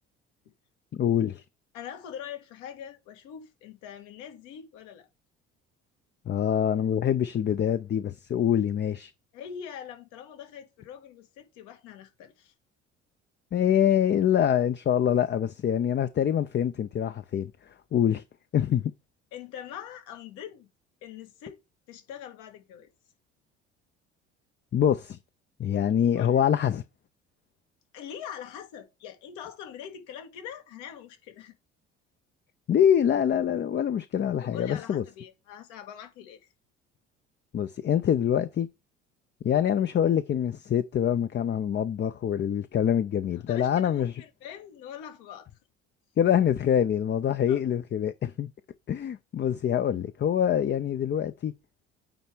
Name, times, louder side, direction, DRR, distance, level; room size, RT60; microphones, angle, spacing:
voice 1, 1.0-1.4 6.3-9.1 13.5-17.5 17.9-18.2 18.5-18.9 24.7-25.2 25.6-26.8 32.7-35.0 37.5-38.7 39.4-44.1 46.2-48.5 48.9-51.5, left 9 dB, 35° left, 0.6 m, -25 dB
voice 2, 1.7-5.1 9.3-12.5 19.3-20.7 21.0-21.6 21.9-22.9 26.1-26.4 27.9-31.6 34.4-36.5 43.4-45.5 47.5-47.6, left 9 dB, 70° left, 1.6 m, -43 dB
8.9 x 3.3 x 4.5 m
hypercardioid pair, 60°, 33 cm